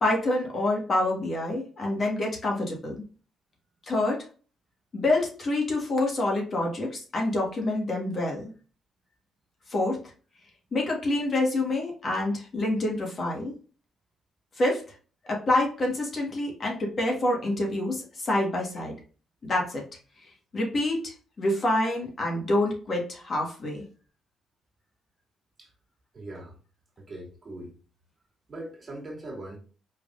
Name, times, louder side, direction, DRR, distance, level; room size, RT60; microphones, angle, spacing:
voice 1, 0.0-3.0 3.9-4.3 4.9-8.5 9.7-10.0 10.7-13.5 14.6-14.9 15.2-18.9 19.4-19.8 20.2-23.8, left 2 dB, 45° left, 0 dB, 1.4 m, -27 dB
voice 2, 26.1-26.6 27.0-27.8 28.5-29.6, right 1 dB, 35° right, -2 dB, 2.0 m, -40 dB
4.6 x 3.4 x 2.5 m, 0.37 s
cardioid pair, 90°, 0 cm